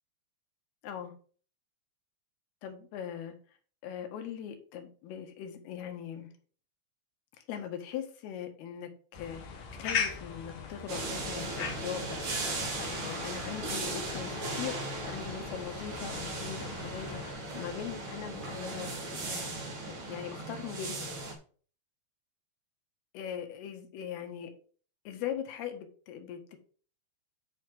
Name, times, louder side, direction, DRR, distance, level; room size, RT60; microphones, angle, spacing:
voice 1, 2.6-3.4 3.8-6.3 7.5-12.2 12.8-19.5 19.9-21.2 23.1-24.5 25.1-26.6, left 9 dB, 80° left, 6 dB, 3.0 m, -40 dB
sound 1, 9.1-17.3, left 6 dB, 60° left, 2.0 m, -40 dB
sound 2, 10.9-21.3, right 2 dB, 45° right, 2.0 m, -37 dB
8.3 x 3.2 x 6.0 m, 0.43 s
omnidirectional pair, 4.6 m